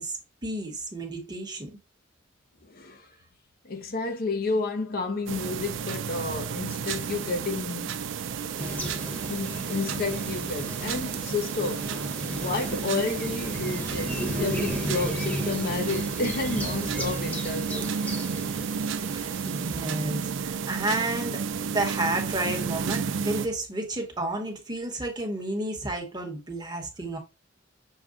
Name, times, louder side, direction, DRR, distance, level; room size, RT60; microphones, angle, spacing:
voice 1, 0.0-1.8 19.1-27.2, right 2 dB, 20° right, 1.0 m, -31 dB
voice 2, 2.6-3.1 3.6-8.0 8.4-8.8 9.3-11.9 12.2-18.0, left 3 dB, 50° left, 0.6 m, -31 dB
sound 1, 5.3-23.5, right 6 dB, 65° right, 0.4 m, -32 dB
sound 2, 8.6-20.0, equal, 5° left, 1.0 m, -35 dB
6.4 x 2.2 x 3.6 m
head